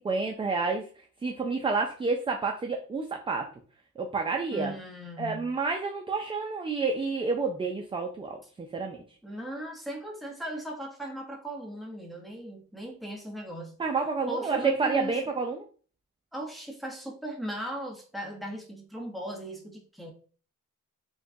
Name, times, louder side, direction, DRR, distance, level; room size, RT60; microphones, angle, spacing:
voice 1, 0.0-0.8 1.2-3.5 4.0-4.7 5.2-9.0 13.8-15.7, right 4 dB, 20° right, 3 dB, 0.3 m, -29 dB
voice 2, 4.5-5.5 9.2-13.7 14.3-15.2 16.3-20.1, right 1 dB, ahead, 0 dB, 0.9 m, -38 dB
4.6 x 2.2 x 2.6 m, 0.40 s
cardioid pair, 120°, 32 cm